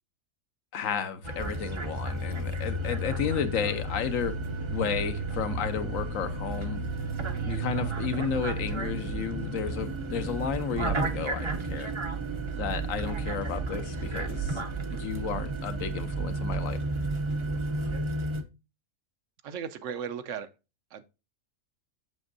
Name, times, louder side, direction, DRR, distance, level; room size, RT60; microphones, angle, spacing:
voice 1, 0.7-4.3 4.7-6.8 7.4-11.9 12.6-14.6 14.9-16.8, left 7 dB, 80° left, 1.2 m, -32 dB
sound 1, 1.2-18.4, right 2 dB, 35° right, 0.5 m, -32 dB
voice 2, 19.4-20.5 20.9-21.0, right 7 dB, 70° right, 1.0 m, -36 dB
7.7 x 6.2 x 2.5 m
omnidirectional pair, 1.4 m